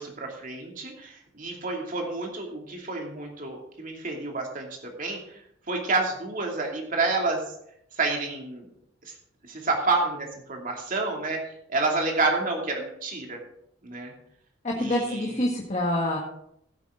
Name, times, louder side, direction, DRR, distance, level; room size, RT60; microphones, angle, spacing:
voice 1, 0.0-5.2 5.7-7.4 8.0-8.6 9.1-9.2 9.5-11.4 11.7-13.4 13.8-14.1 14.8-15.5, right 3 dB, 45° right, 1 dB, 2.6 m, -29 dB
voice 2, 14.6-16.2, left 1 dB, 35° left, -1 dB, 1.5 m, -26 dB
16.0 x 8.4 x 3.8 m, 0.74 s
head